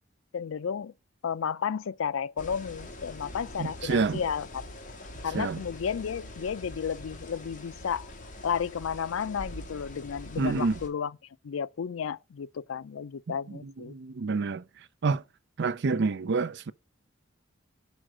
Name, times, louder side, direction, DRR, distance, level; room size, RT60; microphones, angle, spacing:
voice 1, 0.3-0.9 1.2-4.6 5.2-8.1 8.4-11.1 11.4-13.9, left 7 dB, 80° left, 0.4 m, -32 dB
sound 1, 2.4-10.9, left 1 dB, 40° left, 1.7 m, -44 dB
voice 2, 3.6-4.2 5.3-5.6 10.4-10.8 13.5-14.6 15.0-15.2 15.6-16.7, right 4 dB, 60° right, 0.5 m, -28 dB
6.3 x 4.4 x 6.1 m
head